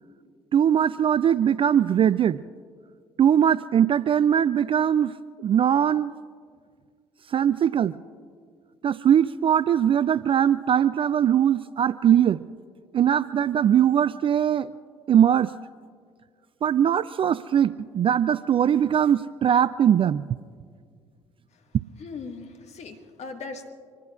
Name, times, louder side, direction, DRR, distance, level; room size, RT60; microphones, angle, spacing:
voice 1, 0.5-2.4 3.2-5.1 5.4-6.1 7.3-8.0 8.8-12.4 12.9-14.7 15.1-15.5 16.6-20.3, right 9 dB, 35° right, 17 dB, 0.4 m, -21 dB
voice 2, 22.0-23.7, left 4 dB, 50° left, 4 dB, 1.8 m, -39 dB
26.0 x 20.0 x 2.5 m, 2.1 s
figure-of-eight pair, 50°, 15 cm